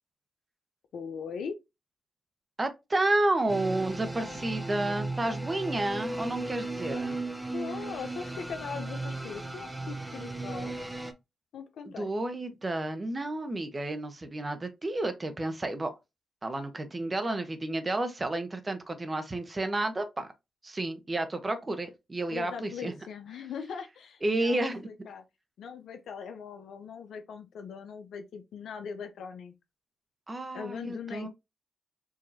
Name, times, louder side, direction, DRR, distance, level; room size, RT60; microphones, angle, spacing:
voice 1, 0.9-1.6 6.9-10.7 11.5-12.1 22.3-25.2 25.6-29.5 30.5-31.3, left 6 dB, 80° left, 0.7 m, -40 dB
voice 2, 2.6-7.2 11.8-15.9 16.4-20.3 20.6-22.9 24.2-24.9 30.3-31.3, right 2 dB, 35° right, 1.0 m, -31 dB
sound 1, 3.5-11.1, right 2 dB, 15° right, 0.8 m, -36 dB
5.0 x 2.9 x 2.7 m
supercardioid pair, 50°, 0 cm